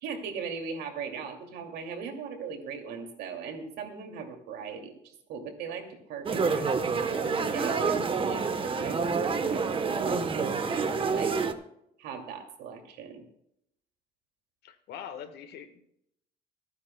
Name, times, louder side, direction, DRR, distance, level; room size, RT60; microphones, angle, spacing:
voice 1, 0.0-11.3 12.0-13.2, right 6 dB, 80° right, 4 dB, 2.5 m, -39 dB
sound 1, 6.3-11.5, right 5 dB, 30° right, 1.1 m, -28 dB
voice 2, 10.9-11.2 14.6-15.9, left 8 dB, 75° left, 8 dB, 1.5 m, -44 dB
25.5 x 9.7 x 2.3 m, 0.77 s
cardioid pair, 110°, 17 cm